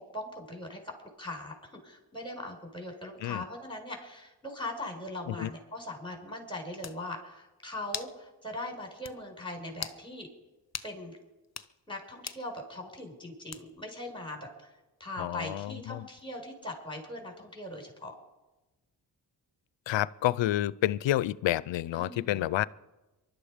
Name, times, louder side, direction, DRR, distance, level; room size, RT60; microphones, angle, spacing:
voice 1, 0.1-10.3 10.8-11.2 11.9-14.7 15.0-18.2 21.9-22.5, left 1 dB, 10° left, 2 dB, 5.2 m, -40 dB
sound 1, 6.4-6.5 6.8-7.0 7.9-8.2 8.6-8.7 9.0-9.2 9.7-10.0 10.7-10.9 11.4-11.7 12.3-12.5 13.5-13.9, left 6 dB, 35° left, 0.9 m, -39 dB
voice 2, 15.2-16.1 19.9-22.6, left 14 dB, 90° left, 20 dB, 0.5 m, -29 dB
23.0 x 12.0 x 5.0 m, 1.1 s
cardioid pair, 60°, 43 cm